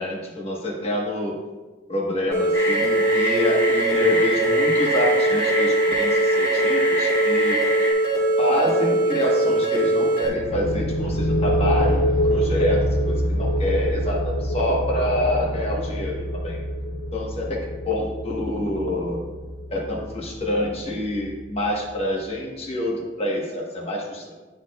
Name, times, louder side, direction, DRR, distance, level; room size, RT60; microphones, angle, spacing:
voice 1, 0.0-1.4 1.9-7.6 8.4-16.6 17.1-19.2 19.7-24.3, left 1 dB, 35° left, -2 dB, 1.3 m, -27 dB
sound 1, 2.3-10.3, right 2 dB, 55° left, 2.1 m, -21 dB
sound 2, 2.5-7.9, left 1 dB, 15° left, 1.0 m, -26 dB
sound 3, 10.2-21.8, equal, 75° left, 0.5 m, -26 dB
11.5 x 4.2 x 2.4 m, 1.3 s
head